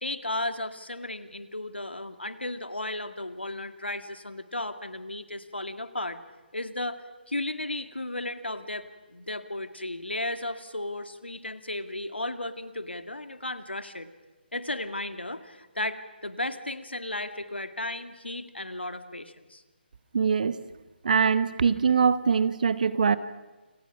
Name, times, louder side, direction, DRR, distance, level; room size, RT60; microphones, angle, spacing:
voice 1, 0.0-6.2 6.5-14.1 14.5-19.6, left 1 dB, 80° left, 9 dB, 2.0 m, -34 dB
voice 2, 20.1-20.6 21.0-23.2, right 6 dB, 50° right, 14 dB, 1.1 m, -23 dB
29.0 x 28.5 x 6.0 m, 1.2 s
figure-of-eight pair, 145°, 6 cm